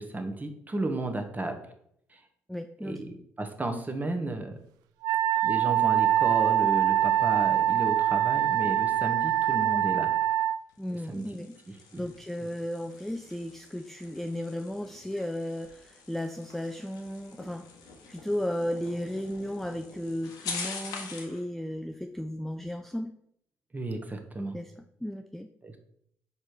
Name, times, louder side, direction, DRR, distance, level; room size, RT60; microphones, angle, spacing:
voice 1, 0.0-1.6 2.8-4.6 5.4-10.1 11.1-11.2 11.9-12.0 23.7-24.6 25.6-25.7, right 2 dB, 25° right, 5 dB, 1.2 m, -33 dB
voice 2, 2.5-3.0 10.8-11.6 12.0-17.7 18.1-23.1 24.5-25.5, left 1 dB, 5° left, 6 dB, 0.4 m, -35 dB
Wind instrument woodwind instrument, 5.0-10.6, right 12 dB, 75° right, 0.3 m, -24 dB
sound 1, 10.7-21.4, left 4 dB, 75° left, 1.1 m, -44 dB
5.2 x 4.2 x 4.7 m, 0.71 s
hypercardioid pair, 45°, 7 cm